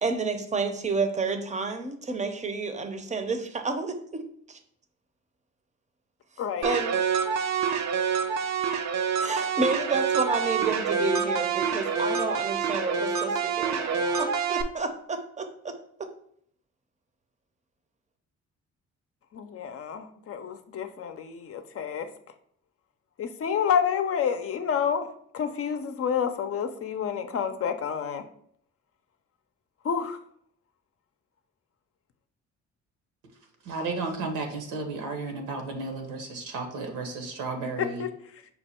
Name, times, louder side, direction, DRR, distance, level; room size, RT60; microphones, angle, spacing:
voice 1, 0.0-4.2 4.5-4.6 6.6-7.0 9.2-16.1, right 4 dB, 25° right, 7 dB, 0.6 m, -30 dB
voice 2, 6.4-6.7 19.3-22.1 23.2-25.1 25.3-28.2 29.8-30.2 37.8-38.1, left 7 dB, 50° left, 9 dB, 0.5 m, -29 dB
sound 1, 6.6-14.6, right 6 dB, 65° right, 0.6 m, -27 dB
voice 3, 33.6-38.0, right 3 dB, 85° right, 4 dB, 1.0 m, -33 dB
5.6 x 2.2 x 4.2 m, 0.65 s
cardioid pair, 90°, 30 cm